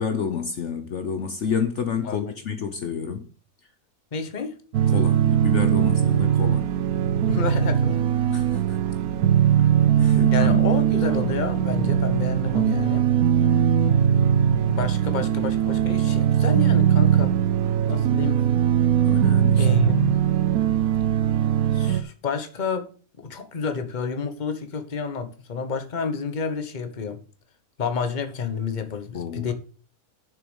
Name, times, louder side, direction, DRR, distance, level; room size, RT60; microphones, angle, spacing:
voice 1, 0.0-3.3 4.9-6.7 8.3-8.8 9.6-9.7 10.0-10.7 13.8-14.3 19.0-19.7 29.1-29.5, left 6 dB, 60° left, 1.1 m, -29 dB
voice 2, 4.1-4.5 7.3-8.1 10.1-13.1 14.7-17.4 17.9-18.4 19.6-20.2 21.7-22.9 23.2-27.2 27.8-29.5, left 5 dB, 35° left, 1.2 m, -29 dB
sound 1, 4.7-22.0, right 9 dB, 80° right, 1.2 m, -20 dB
7.1 x 6.8 x 7.1 m
omnidirectional pair, 1.5 m